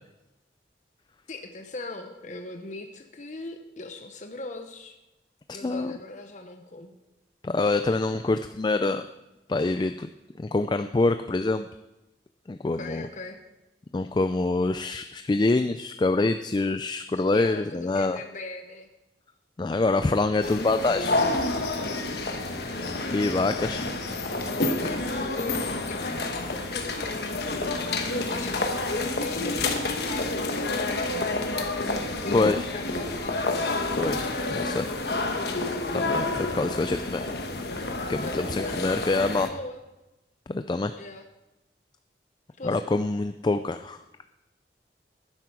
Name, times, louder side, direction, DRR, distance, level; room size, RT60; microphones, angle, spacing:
voice 1, 1.3-5.0 5.5-6.9 12.6-13.4 17.3-18.9 21.9-22.0 22.6-22.7 22.9-23.0 24.2-27.6 28.0-32.4 32.7-33.4 38.2-39.8 41.0-41.2 42.6-42.8, left 3 dB, 45° left, 5 dB, 0.8 m, -39 dB
voice 2, 5.5-5.9 7.4-9.1 9.5-10.1 10.4-11.7 12.5-13.1 13.9-18.2 19.6-21.2 23.1-23.9 32.3-32.7 34.0-34.9 35.9-37.2 38.1-39.5 40.5-40.9 42.6-44.0, left 2 dB, 25° left, 9 dB, 0.3 m, -25 dB
sound 1, 20.4-39.5, left 2 dB, 60° left, 1.2 m, -29 dB
11.5 x 9.7 x 4.7 m, 0.98 s
head